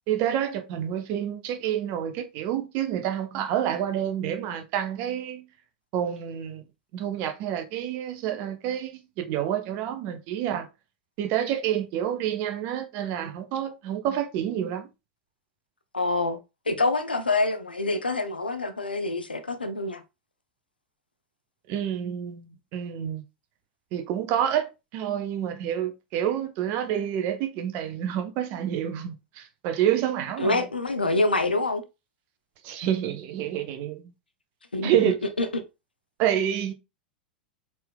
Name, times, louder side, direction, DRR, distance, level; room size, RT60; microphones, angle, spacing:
voice 1, 0.1-5.5 5.9-6.7 6.9-10.7 11.2-14.9 21.7-23.2 23.9-30.6 32.6-34.1 34.8-35.3 36.2-36.7, right 10 dB, 40° right, 0.8 m, -28 dB
voice 2, 15.9-16.4 16.7-20.0 30.4-31.8 34.7-35.5, left 2 dB, 80° left, 0.6 m, -26 dB
4.2 x 3.6 x 2.2 m
figure-of-eight pair, 90°, 5 cm